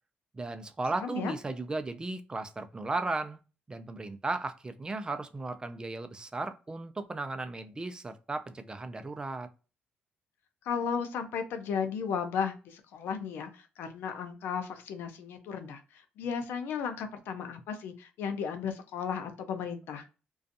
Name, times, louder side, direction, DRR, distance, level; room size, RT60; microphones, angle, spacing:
voice 1, 0.3-3.4 3.7-9.5, right 3 dB, 25° right, 0.4 m, -35 dB
voice 2, 1.0-1.3 10.7-15.8 16.2-20.0, left 6 dB, 85° left, 0.5 m, -34 dB
2.5 x 2.3 x 2.5 m
cardioid pair, 85°, 4 cm